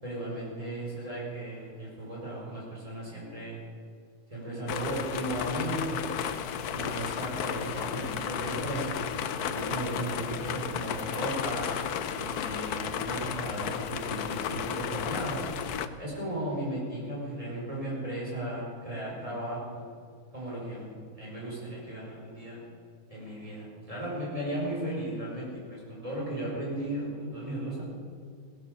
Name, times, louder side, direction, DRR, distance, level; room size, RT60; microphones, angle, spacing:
voice 1, 0.0-3.6 4.3-6.0 6.7-9.0 9.4-11.7 12.1-15.5 16.0-19.8 20.3-22.6 23.1-27.8, right 1 dB, 20° right, -5 dB, 5.5 m, -35 dB
sound 1, 4.7-15.9, left 8 dB, 85° left, 1.3 m, -33 dB
18.0 x 11.0 x 6.9 m, 2.1 s
omnidirectional pair, 1.6 m